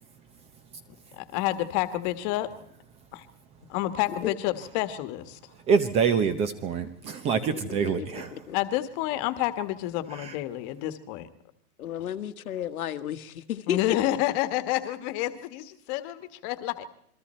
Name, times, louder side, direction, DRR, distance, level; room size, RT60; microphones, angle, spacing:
voice 1, 1.2-2.5 3.1-3.2 3.7-5.4 8.5-11.3 13.7-16.9, left 15 dB, 30° left, 1.5 m, -29 dB
voice 2, 5.7-8.4 10.2-10.3, right 6 dB, 15° right, 0.7 m, -26 dB
voice 3, 7.3-7.6 8.0-8.6 11.8-13.8, left 10 dB, 70° left, 1.5 m, -33 dB
27.5 x 22.0 x 4.4 m
hypercardioid pair, 160°, 44 cm